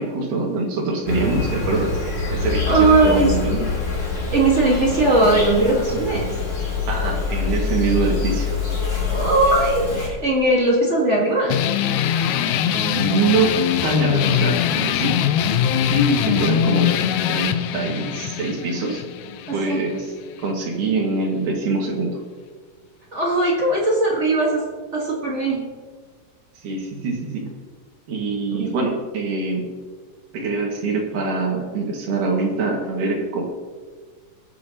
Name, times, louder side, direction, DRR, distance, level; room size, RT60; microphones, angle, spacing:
voice 1, 0.0-1.9 2.3-3.6 6.9-8.5 12.6-13.5 13.8-15.2 15.9-16.9 17.3-19.0 19.5-20.1 20.4-22.2 26.6-27.4 28.1-29.7 30.3-33.4, right 3 dB, 70° right, 0 dB, 3.3 m, -24 dB
Insect, 1.1-10.1, left 4 dB, 35° left, 2.8 m, -25 dB
voice 2, 2.6-3.3 4.3-6.3 9.0-11.6 19.7-19.8 23.1-24.6 24.9-25.6 28.5-28.7, right 2 dB, 55° right, -3 dB, 0.7 m, -19 dB
sound 1, 11.5-20.5, left 9 dB, 90° left, 1.7 m, -22 dB
19.5 x 8.2 x 2.9 m, 1.5 s
omnidirectional pair, 4.0 m